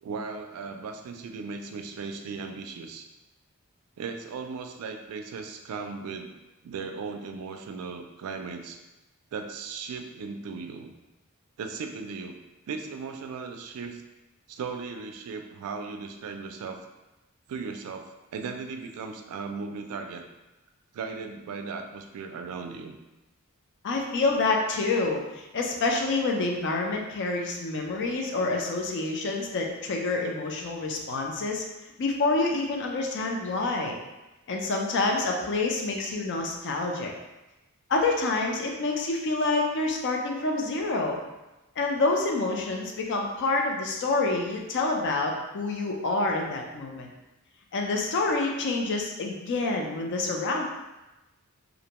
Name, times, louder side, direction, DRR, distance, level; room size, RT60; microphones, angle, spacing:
voice 1, 0.0-3.1 4.0-6.3 6.6-8.8 9.3-10.9 11.6-12.4 12.7-14.0 14.5-16.8 17.5-20.3 20.9-23.0, right 5 dB, 75° right, 5 dB, 0.3 m, -37 dB
voice 2, 23.8-31.6 32.0-34.0 34.5-37.1 37.9-41.2 41.8-47.1 47.7-50.6, left 3 dB, 55° left, 1 dB, 0.4 m, -27 dB
2.5 x 2.1 x 2.9 m, 1.0 s
head